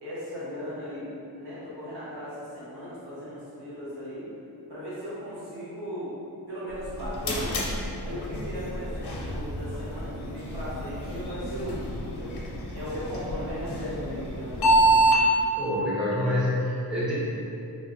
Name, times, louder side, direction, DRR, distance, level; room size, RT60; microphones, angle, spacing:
voice 1, 0.0-4.3 4.7-6.1 6.5-7.6 8.0-12.4 12.7-15.0, equal, 85° right, -10 dB, 1.1 m, -37 dB
sound 1, 6.7-15.2, right 2 dB, 80° left, 0.7 m, -28 dB
voice 2, 15.6-17.1, left 1 dB, ahead, -9 dB, 0.5 m, -27 dB
3.2 x 2.1 x 2.5 m, 2.7 s
wide cardioid pair, 140°, 39 cm